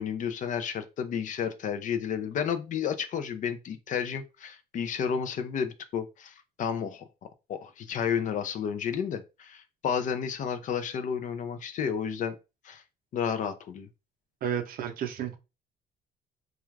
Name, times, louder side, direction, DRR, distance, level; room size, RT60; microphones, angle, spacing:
voice 1, 0.0-7.1 7.5-12.3 12.6-12.8 13.1-13.9, left 7 dB, 50° left, 0.4 m, -31 dB
voice 2, 14.4-15.4, right 9 dB, 60° right, 0.6 m, -32 dB
2.3 x 2.3 x 3.1 m
cardioid pair, 110°, 17 cm